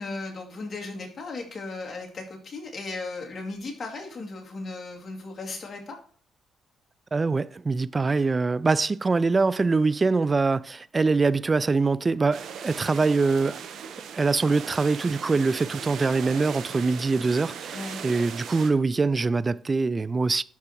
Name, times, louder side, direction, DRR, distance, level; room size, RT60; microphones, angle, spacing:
voice 1, 0.0-6.0 17.7-18.0, left 3 dB, 45° left, 2.4 m, -36 dB
voice 2, 7.1-13.6 14.1-20.4, right 4 dB, 30° right, 0.3 m, -24 dB
sound 1, 12.3-18.7, right 7 dB, 75° right, 0.9 m, -38 dB
11.5 x 4.8 x 3.0 m
cardioid pair, 90°, 0 cm